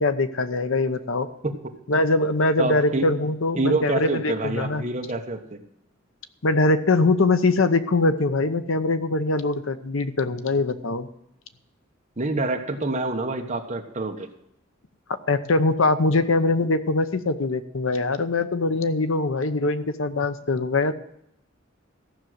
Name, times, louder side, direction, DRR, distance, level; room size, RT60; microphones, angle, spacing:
voice 1, 0.0-1.3 1.9-4.8 6.4-11.1 15.1-20.9, left 2 dB, 75° left, 11 dB, 0.8 m, -22 dB
voice 2, 2.6-3.1 3.6-5.6 12.2-14.3, right 2 dB, 35° right, 4 dB, 1.3 m, -27 dB
14.5 x 6.3 x 7.9 m, 0.76 s
head